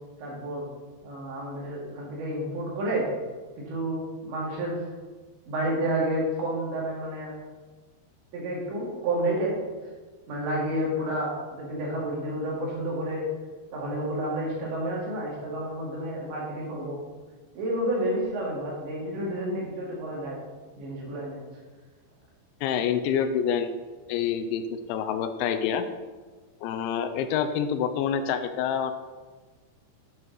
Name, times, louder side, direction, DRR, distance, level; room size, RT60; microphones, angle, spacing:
voice 1, 0.2-0.7 1.0-3.1 3.6-4.8 5.5-7.3 8.3-9.6 10.3-13.3 13.7-17.0 17.6-20.4 20.8-21.4, right 1 dB, 75° right, -4 dB, 4.4 m, -30 dB
voice 2, 22.6-23.7 24.1-25.9 26.6-28.9, left 8 dB, 85° left, 9 dB, 2.9 m, -27 dB
9.6 x 7.5 x 4.0 m, 1.4 s
omnidirectional pair, 5.3 m